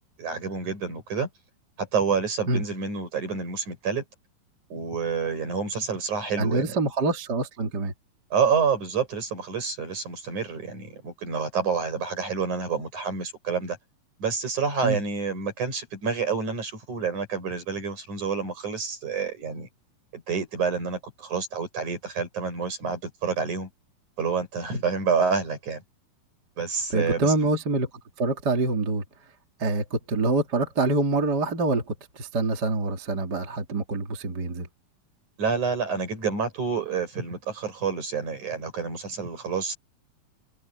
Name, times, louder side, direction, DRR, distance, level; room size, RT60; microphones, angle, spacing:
voice 1, 0.2-1.3 1.8-4.0 4.7-6.8 8.3-13.8 14.2-19.7 20.1-23.7 24.2-25.8 26.6-27.3 35.4-39.8, right 5 dB, 50° right, 8.2 m, -28 dB
voice 2, 6.4-7.9 14.8-15.0 24.7-24.8 26.9-27.9 28.2-29.0 29.6-34.7, right 2 dB, 30° right, 2.7 m, -25 dB
omnidirectional pair, 4.4 m